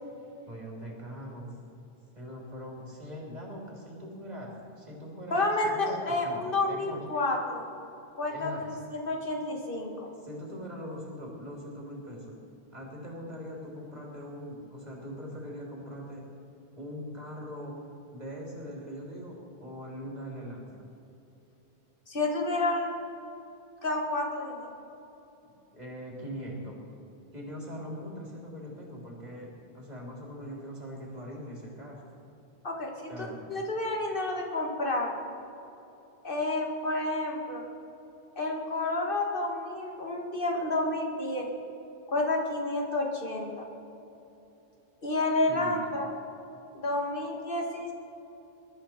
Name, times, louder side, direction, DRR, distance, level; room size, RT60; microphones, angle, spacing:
voice 1, 0.5-1.5 2.1-7.0 8.3-8.8 10.2-12.4 12.7-16.3 16.8-17.8 18.1-20.9 25.7-26.8 27.3-32.0 33.1-33.5 45.5-45.8, equal, 35° right, -3 dB, 3.3 m, -41 dB
voice 2, 5.3-7.7 8.1-10.1 22.1-22.9 23.8-24.7 32.6-35.2 36.2-37.6 38.4-41.5 42.1-43.7 45.0-46.1 46.7-47.9, left 2 dB, 50° left, 1 dB, 2.1 m, -30 dB
21.5 x 12.5 x 4.4 m, 3.0 s
omnidirectional pair, 1.2 m